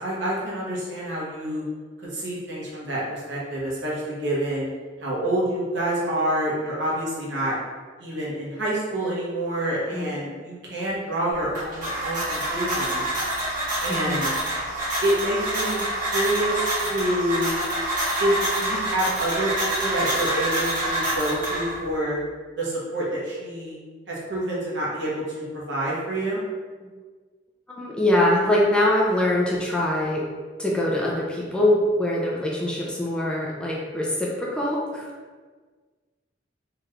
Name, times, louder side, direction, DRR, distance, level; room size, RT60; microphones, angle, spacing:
voice 1, 0.0-1.6 2.0-4.7 5.0-7.5 8.0-13.1 13.8-14.4 15.0-15.9 16.1-17.5 18.2-22.2 22.6-23.8 24.1-26.4, right 1 dB, 70° right, -6 dB, 0.9 m, -27 dB
sound 1, 11.3-22.0, right 1 dB, 45° right, 1.4 m, -27 dB
voice 2, 13.9-14.2 26.8-26.9 27.8-30.2 30.6-35.0, left 1 dB, 5° left, -4 dB, 0.4 m, -23 dB
3.1 x 2.9 x 2.4 m, 1.5 s
head